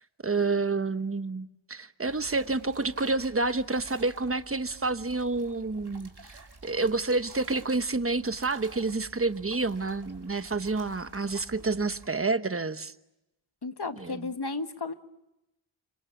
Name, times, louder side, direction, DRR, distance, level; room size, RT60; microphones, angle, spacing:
voice 1, 0.2-12.9 14.0-14.3, right 3 dB, 30° right, 1.1 m, -29 dB
sound 1, 2.0-12.1, right 3 dB, 55° right, 3.8 m, -50 dB
voice 2, 13.6-14.9, left 3 dB, 55° left, 1.6 m, -33 dB
29.5 x 25.5 x 7.1 m
wide cardioid pair, 65°, 47 cm